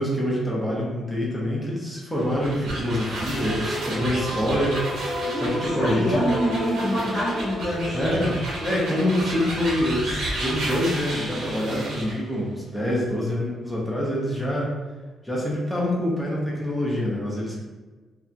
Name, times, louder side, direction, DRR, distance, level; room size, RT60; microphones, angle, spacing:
voice 1, 0.0-6.3 7.9-14.7 15.2-17.6, left 1 dB, 5° left, -5 dB, 0.6 m, -26 dB
sound 1, 2.1-12.2, right 1 dB, 80° right, 0.8 m, -32 dB
sound 2, 3.3-10.3, equal, 60° left, 1.1 m, -33 dB
voice 2, 5.2-8.2, equal, 25° left, -9 dB, 0.9 m, -26 dB
2.8 x 2.2 x 2.4 m, 1.3 s
cardioid pair, 165°, 0 cm